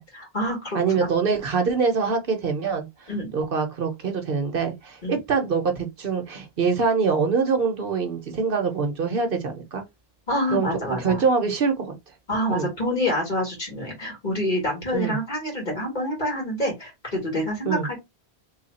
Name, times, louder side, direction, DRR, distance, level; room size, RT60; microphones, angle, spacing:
voice 1, 0.1-0.8 3.1-3.3 5.0-5.2 10.3-11.2 12.3-17.8, left 1 dB, 50° left, 1.8 m, -27 dB
voice 2, 0.7-2.9 3.3-9.8 10.5-10.7 11.0-11.9 12.5-12.7 14.9-15.2 17.6-17.9, right 5 dB, 65° right, 0.9 m, -24 dB
3.2 x 2.3 x 4.0 m
omnidirectional pair, 1.0 m